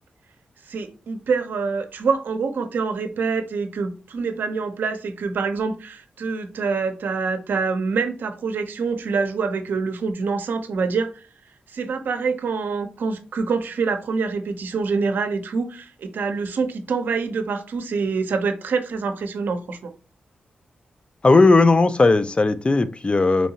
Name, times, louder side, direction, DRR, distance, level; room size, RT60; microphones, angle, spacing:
voice 1, 0.6-11.2 11.7-19.9, right 4 dB, 80° right, 0.6 m, -26 dB
voice 2, 21.2-23.5, left 3 dB, 35° left, 0.5 m, -16 dB
4.3 x 2.7 x 2.8 m
cardioid pair, 50°, 3 cm